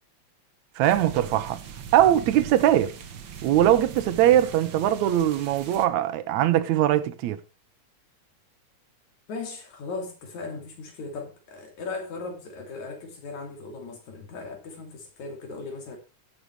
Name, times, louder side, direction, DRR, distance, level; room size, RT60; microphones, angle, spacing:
sound 1, 0.8-5.9, right 7 dB, 55° right, 1.4 m, -40 dB
voice 1, 0.8-1.6 1.9-2.9 3.4-7.4, right 12 dB, 75° right, 2.1 m, -21 dB
voice 2, 9.3-16.0, left 3 dB, 70° left, 4.1 m, -37 dB
16.5 x 7.9 x 3.2 m
omnidirectional pair, 3.5 m